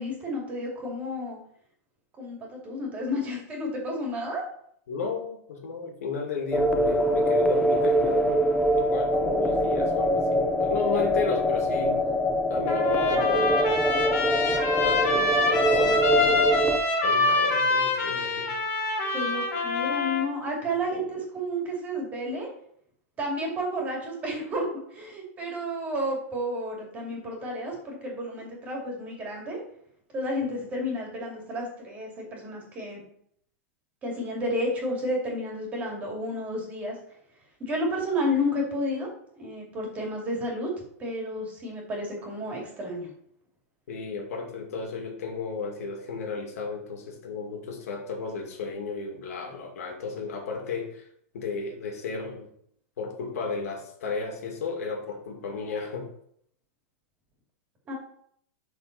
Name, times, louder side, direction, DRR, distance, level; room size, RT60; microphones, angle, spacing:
voice 1, 0.0-1.4 2.2-4.4 19.1-22.5 23.2-29.6 30.1-33.0 34.0-37.0 37.6-39.1 39.4-40.7 41.0-43.1 57.9-58.0, equal, 20° right, -1 dB, 2.4 m, -31 dB
voice 2, 4.9-8.5 8.8-12.0 12.5-13.6 14.8-16.4 17.0-18.5 20.9-21.1 43.9-51.1 51.3-52.5 53.0-56.1, left 4 dB, 75° left, 2 dB, 2.1 m, -33 dB
sound 1, 6.5-16.8, equal, ahead, 0.5 m, -24 dB
Trumpet, 12.7-20.3, left 3 dB, 35° left, 2.5 m, -25 dB
12.0 x 4.1 x 4.0 m, 0.67 s
supercardioid pair, 160°, 8 cm